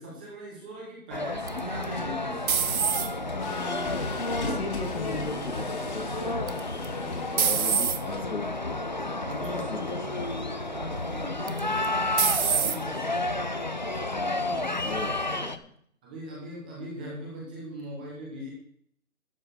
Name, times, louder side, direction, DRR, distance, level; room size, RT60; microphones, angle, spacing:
voice 1, 0.0-2.8 9.2-13.4 16.0-18.5, equal, 5° right, -4 dB, 0.9 m, -40 dB
sound 1, 1.1-15.6, left 2 dB, 35° left, 0.5 m, -31 dB
sound 2, 1.5-3.4 3.9-4.5 6.5-6.9 7.4-8.0 8.8-9.0 9.4-9.5 11.5-11.9 12.2-12.8, right 7 dB, 75° right, 0.9 m, -25 dB
sound 3, 1.8-9.6, left 3 dB, 50° left, 2.7 m, -40 dB
voice 2, 3.2-4.2 4.4-9.1 9.5-10.3 10.7-10.9 14.1-15.7, left 4 dB, 90° left, 6 dB, 2.0 m, -39 dB
12.5 x 8.2 x 4.3 m, 0.65 s
hypercardioid pair, 165°, 43 cm